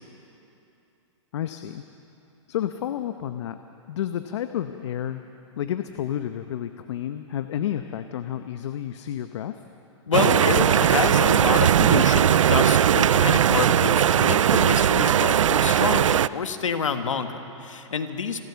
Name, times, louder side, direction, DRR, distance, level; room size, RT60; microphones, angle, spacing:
voice 1, 1.3-1.8 2.5-3.6 3.9-5.2 5.5-9.5, left 10 dB, 65° left, 9 dB, 0.9 m, -30 dB
voice 2, 10.1-18.4, left 6 dB, 90° left, 8 dB, 1.6 m, -28 dB
sound 1, 10.1-16.3, right 9 dB, 85° right, 0.5 m, -19 dB
29.0 x 13.5 x 7.0 m, 2.9 s
hypercardioid pair, 130°, 16 cm